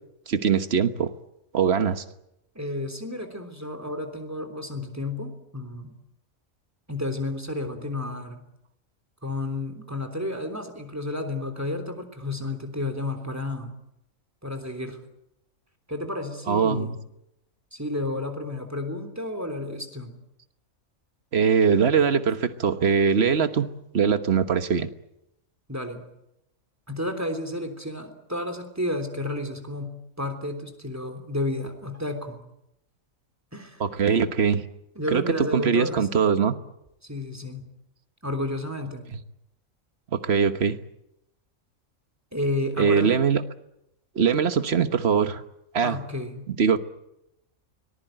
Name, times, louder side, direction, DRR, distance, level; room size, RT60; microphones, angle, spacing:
voice 1, 0.3-1.1 1.5-2.0 16.5-17.0 21.3-23.7 23.9-24.9 33.8-34.6 35.1-35.2 35.5-36.5 40.1-40.8 42.8-43.4 44.1-45.4 45.7-46.0 46.5-46.8, right 6 dB, 50° right, 10 dB, 1.4 m, -22 dB
voice 2, 2.5-5.9 6.9-8.4 9.2-13.7 14.4-15.0 15.9-17.0 17.7-20.2 25.7-26.0 26.9-32.4 33.5-33.8 34.9-36.1 37.0-37.6 38.2-39.1 42.3-43.2 45.8-46.5, left 1 dB, 10° right, 8 dB, 3.3 m, -31 dB
25.0 x 19.5 x 9.0 m, 0.85 s
omnidirectional pair, 1.4 m